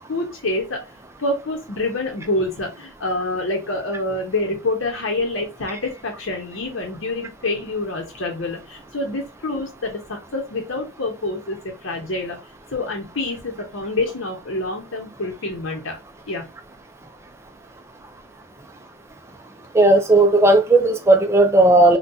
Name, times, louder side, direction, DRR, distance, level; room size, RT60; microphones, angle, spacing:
voice 1, 0.1-0.8 1.2-12.4 12.7-16.0 16.3-16.5, left 2 dB, 70° left, 0.8 m, -27 dB
voice 2, 19.7-22.0, right 2 dB, 15° right, 0.4 m, -14 dB
3.8 x 2.2 x 2.6 m
head